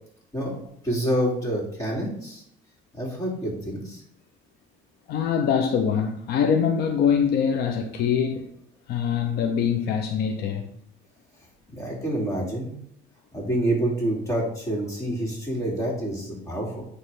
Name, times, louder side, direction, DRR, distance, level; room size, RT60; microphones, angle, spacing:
voice 1, 0.3-2.4 2.9-4.0 11.7-12.8 13.3-16.8, right 1 dB, 20° left, 2.7 m, -27 dB
voice 2, 5.1-8.5 8.9-10.8, left 7 dB, 75° left, 0.7 m, -23 dB
9.1 x 3.3 x 3.7 m
cardioid pair, 110°, 17 cm